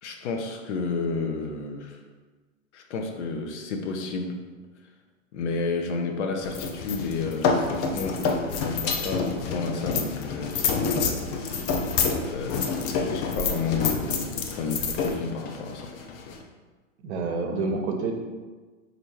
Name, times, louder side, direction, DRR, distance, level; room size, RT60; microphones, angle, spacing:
voice 1, 0.0-2.0 2.7-4.4 5.3-11.8 12.3-15.9, left 4 dB, 60° left, 4 dB, 0.7 m, -31 dB
sound 1, 6.4-16.4, left 5 dB, 25° left, 0.4 m, -28 dB
voice 2, 17.0-18.1, right 3 dB, 55° right, 3 dB, 0.8 m, -28 dB
4.3 x 2.7 x 4.4 m, 1.3 s
figure-of-eight pair, 90°, 40 cm